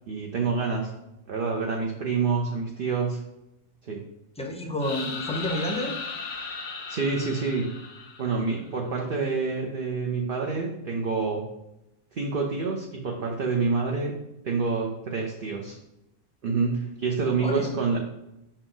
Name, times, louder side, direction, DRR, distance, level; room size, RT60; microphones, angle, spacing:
voice 1, 0.1-0.9 1.3-3.2 3.8-4.0 6.9-7.7 8.2-11.4 12.1-14.1 14.4-15.8 16.4-18.0, right 4 dB, 50° right, 1 dB, 0.8 m, -27 dB
voice 2, 4.4-5.9 17.2-17.7, left 1 dB, 5° left, 1 dB, 0.6 m, -30 dB
sound 1, 4.8-8.6, left 4 dB, 80° left, 1.3 m, -36 dB
5.9 x 4.4 x 3.8 m, 0.88 s
omnidirectional pair, 1.4 m